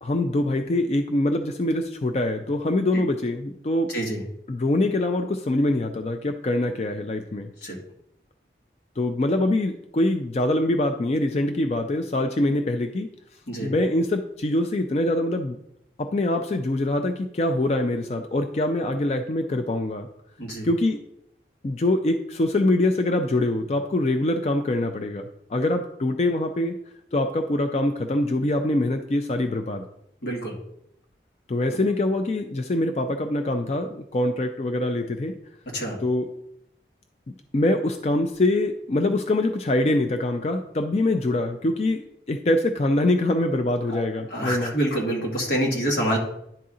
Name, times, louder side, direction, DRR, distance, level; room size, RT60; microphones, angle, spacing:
voice 1, 0.0-3.9 4.5-7.5 9.0-13.1 13.6-15.6 16.0-20.1 20.6-21.0 21.6-26.8 27.1-29.9 31.5-35.3 36.0-36.3 37.5-44.8, left 1 dB, 35° left, 6 dB, 0.4 m, -24 dB
voice 2, 30.2-30.5 35.7-36.0 43.9-44.0 44.3-46.2, right 1 dB, 85° left, -1 dB, 1.9 m, -26 dB
10.5 x 4.1 x 3.7 m, 0.78 s
head